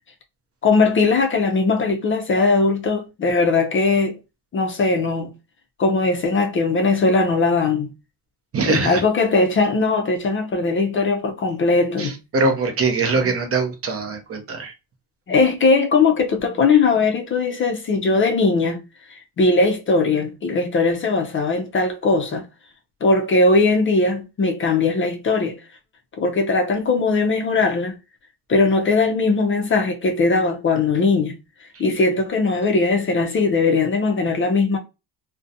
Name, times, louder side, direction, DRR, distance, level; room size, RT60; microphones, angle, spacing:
voice 1, 0.6-4.2 4.5-5.3 5.8-7.9 8.7-12.2 15.3-18.8 19.4-22.5 23.0-25.6 26.2-28.0 28.5-31.4 31.8-34.8, left 3 dB, 30° left, 0.4 m, -19 dB
voice 2, 8.5-9.0 12.0-14.7, right 3 dB, 35° right, 0.6 m, -22 dB
2.4 x 2.1 x 2.6 m
cardioid pair, 105°, 40 cm